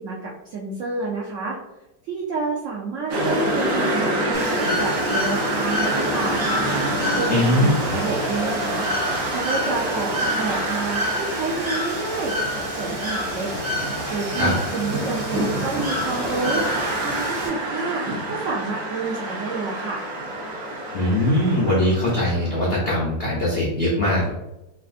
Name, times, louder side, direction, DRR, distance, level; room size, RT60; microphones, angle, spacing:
voice 1, 0.0-1.6 2.0-6.4 7.1-8.9 9.3-10.1 10.4-13.5 14.1-20.0, right 3 dB, 85° right, -3 dB, 0.6 m, -29 dB
sound 1, 3.1-22.7, right 1 dB, 65° right, 0.9 m, -27 dB
Bird / Water, 4.3-17.5, equal, 45° right, 0.4 m, -29 dB
voice 2, 7.3-7.7 14.4-14.5 20.9-24.3, left 1 dB, 85° left, -4 dB, 0.5 m, -21 dB
3.4 x 2.5 x 2.4 m, 0.94 s
omnidirectional pair, 1.9 m